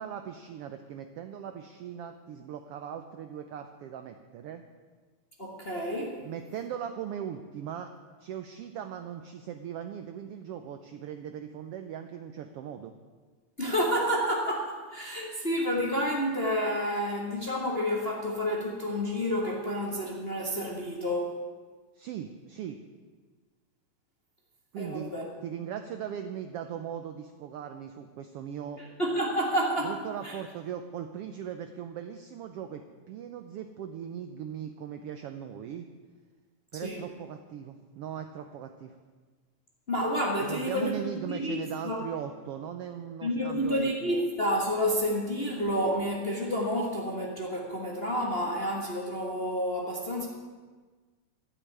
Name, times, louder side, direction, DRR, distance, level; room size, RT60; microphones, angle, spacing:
voice 1, 0.0-4.6 6.2-7.9 8.2-12.9 21.9-22.8 24.7-25.1 25.4-28.8 29.8-35.9 36.7-39.0 40.4-44.3, right 9 dB, 85° right, 7 dB, 1.3 m, -39 dB
voice 2, 5.4-6.2 13.6-21.4 24.8-25.2 29.0-29.9 30.2-30.3 36.8-37.0 39.9-40.9 41.2-42.0 43.2-50.3, equal, 35° left, -2 dB, 1.0 m, -29 dB
12.5 x 6.8 x 9.9 m, 1.4 s
omnidirectional pair, 3.5 m